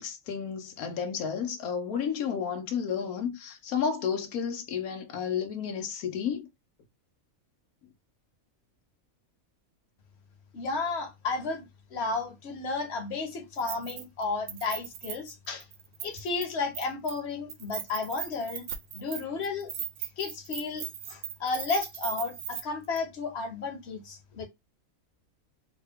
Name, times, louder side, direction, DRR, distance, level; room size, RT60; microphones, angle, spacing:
voice 1, 0.0-6.5, left 7 dB, 85° left, 1.2 m, -32 dB
voice 2, 10.5-15.7 16.0-18.6 18.9-19.7 20.0-24.5, left 4 dB, 55° left, 1.0 m, -33 dB
Keys jangling, 13.6-14.2 14.5-16.5 16.8-17.2 17.5-22.6 23.0-23.1, right 9 dB, 65° right, 0.7 m, -38 dB
3.1 x 2.2 x 3.4 m
omnidirectional pair, 1.5 m